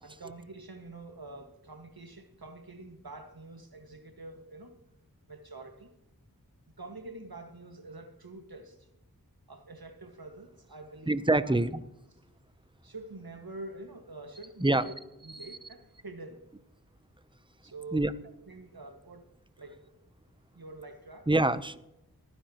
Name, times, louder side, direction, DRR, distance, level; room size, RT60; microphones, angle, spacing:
voice 1, 0.0-4.7 5.3-5.9 6.8-8.9 9.5-11.6 12.8-15.0 15.2-16.4 17.6-18.1 18.5-19.3 19.6-19.9 20.5-21.3, right 2 dB, 80° right, 5 dB, 1.9 m, -46 dB
voice 2, 11.1-11.8 14.6-14.9 17.9-18.1 21.3-21.8, right 2 dB, 15° right, 13 dB, 0.8 m, -25 dB
24.0 x 9.8 x 3.0 m, 0.88 s
wide cardioid pair, 45°, 36 cm